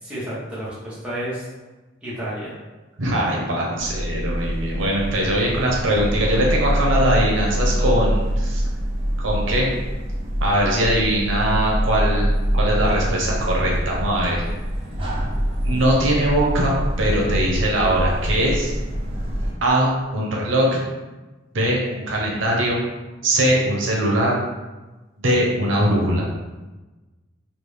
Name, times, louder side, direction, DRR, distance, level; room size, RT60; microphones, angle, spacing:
voice 1, 0.0-1.5 2.0-2.6, right 1 dB, 5° right, -10 dB, 1.2 m, -31 dB
voice 2, 3.0-8.6 9.2-9.7 10.4-12.3 12.5-14.4 15.6-18.7 19.6-20.9 21.5-22.8 23.2-24.4 25.2-26.2, right 1 dB, 70° right, -3 dB, 0.7 m, -21 dB
sound 1, 3.8-19.5, equal, 30° right, 0.6 m, -24 dB
3.4 x 2.4 x 3.2 m, 1.2 s
head